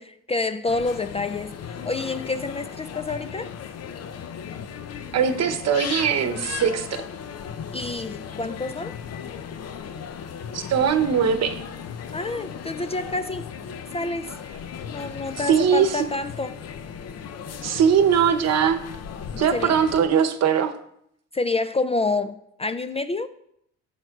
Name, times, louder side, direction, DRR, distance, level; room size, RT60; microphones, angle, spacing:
voice 1, 0.0-3.5 7.7-8.9 12.1-13.5 13.9-14.4 14.9-16.6 19.5-19.7 21.3-23.3, left 3 dB, 20° left, 0.3 m, -28 dB
sound 1, 0.7-20.1, left 7 dB, 55° left, 0.7 m, -36 dB
voice 2, 5.1-7.0 10.5-11.6 15.4-16.1 17.5-18.8 19.4-20.7, right 7 dB, 60° right, 0.9 m, -21 dB
12.0 x 7.8 x 2.4 m
cardioid pair, 90°, 30 cm